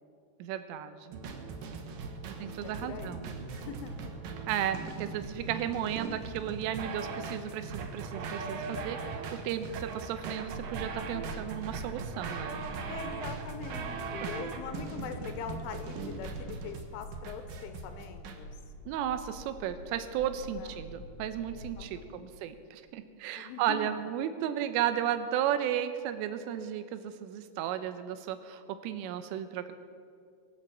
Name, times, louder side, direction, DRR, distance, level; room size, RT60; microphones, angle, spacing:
voice 1, 0.4-1.2 2.4-3.3 4.5-12.6 14.2-14.3 18.9-29.7, right 10 dB, 90° right, 10 dB, 3.5 m, -34 dB
sound 1, 1.1-18.4, right 4 dB, 70° right, 2.1 m, -40 dB
voice 2, 2.3-3.3 3.5-4.0 12.9-18.6 20.4-20.8 21.5-22.3 23.4-24.0, left 6 dB, 85° left, 8 dB, 3.5 m, -43 dB
sound 2, 4.8-8.2 10.3-21.9, equal, 15° right, 3.4 m, -47 dB
23.5 x 7.9 x 7.4 m, 2.3 s
omnidirectional pair, 5.6 m